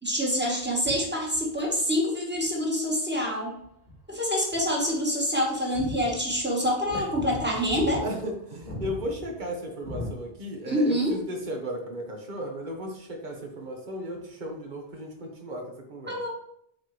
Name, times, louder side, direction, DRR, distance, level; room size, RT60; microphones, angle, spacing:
voice 1, 0.0-3.5 4.1-8.0 10.6-11.2 16.1-16.3, equal, 10° right, -2 dB, 1.5 m, -26 dB
sound 1, 0.6-2.7 3.4-4.2 4.5-4.6 4.9-5.0 5.4-10.7 11.0-11.2 12.7-12.8, left 1 dB, 75° right, 2.9 m, -39 dB
voice 2, 8.0-16.3, equal, 50° right, 2 dB, 1.3 m, -35 dB
8.8 x 4.3 x 3.2 m, 0.74 s
omnidirectional pair, 1.0 m